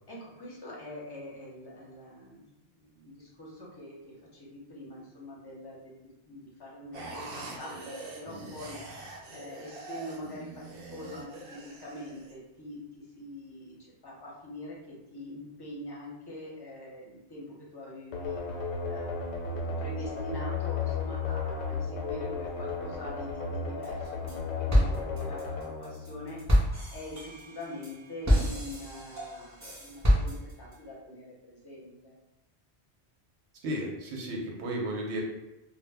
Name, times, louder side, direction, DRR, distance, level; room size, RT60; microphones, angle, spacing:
voice 1, 0.1-2.5 2.7-7.9 8.2-8.8 9.3-10.5 10.9-12.8 13.2-13.8 14.0-18.4 18.9-26.4 26.9-32.2, left 1 dB, 30° left, -4 dB, 0.5 m, -44 dB
sound 1, 6.9-12.3, right 2 dB, 65° right, 0.7 m, -43 dB
sound 2, 18.1-26.8, left 4 dB, 85° left, 0.9 m, -34 dB
sound 3, 23.8-24.4 24.7-30.7, equal, 30° right, 0.3 m, -28 dB
voice 2, 33.6-35.2, right 1 dB, 90° right, -1 dB, 0.9 m, -33 dB
2.0 x 2.0 x 3.3 m, 0.97 s
omnidirectional pair, 1.1 m